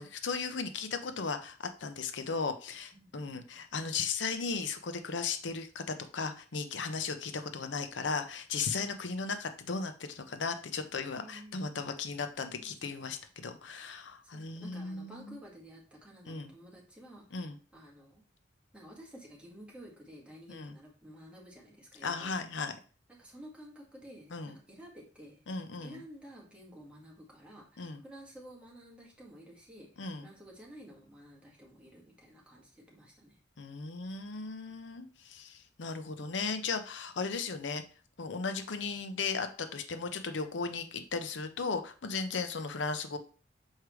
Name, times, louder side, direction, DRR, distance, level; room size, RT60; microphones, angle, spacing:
voice 1, 0.0-15.4 16.3-16.5 17.3-17.6 20.5-20.8 22.0-22.8 24.3-24.6 25.5-26.0 27.8-28.0 30.0-30.3 33.6-37.8 38.2-43.2, left 4 dB, 85° left, 8 dB, 0.7 m, -36 dB
voice 2, 2.9-3.4 11.2-11.6 12.5-13.0 14.3-18.2 18.7-22.4 23.1-25.4 25.8-33.4, equal, 5° right, -3 dB, 1.9 m, -52 dB
6.5 x 4.7 x 3.1 m, 0.38 s
head